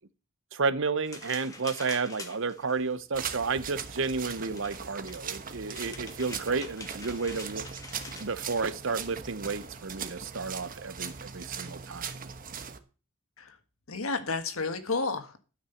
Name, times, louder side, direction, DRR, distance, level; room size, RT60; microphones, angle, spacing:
voice 1, 0.5-7.6 8.2-12.1, right 4 dB, 65° right, 0.9 m, -31 dB
sound 1, 1.0-8.6, left 3 dB, 15° left, 1.8 m, -46 dB
sound 2, 3.1-12.8, right 6 dB, 40° right, 1.1 m, -40 dB
voice 2, 13.9-15.4, left 3 dB, 80° left, 1.7 m, -31 dB
12.5 x 6.1 x 7.0 m
head